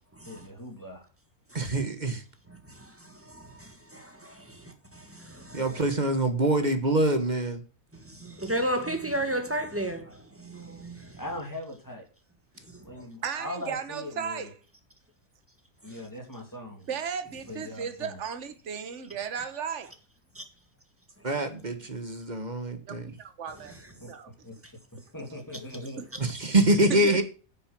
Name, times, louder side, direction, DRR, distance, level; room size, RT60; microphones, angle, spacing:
voice 1, 0.3-1.1 5.7-5.9 11.2-12.1 12.8-14.5 15.8-16.9 17.5-18.2 24.0-24.6 24.9-26.0, left 1 dB, 15° left, 2.8 m, -40 dB
voice 2, 1.5-2.2 5.5-7.6 21.2-23.1 26.2-27.2, right 2 dB, 30° right, 1.4 m, -25 dB
voice 3, 2.7-4.6 4.9-5.6 7.9-11.2 12.9-13.1 20.4-20.5, right 1 dB, 10° right, 1.6 m, -34 dB
voice 4, 13.2-14.5 16.9-19.9 22.8-23.7 24.1-24.3 26.0-26.1 26.9-27.2, right 7 dB, 55° right, 1.5 m, -35 dB
9.6 x 7.0 x 5.9 m
omnidirectional pair, 1.5 m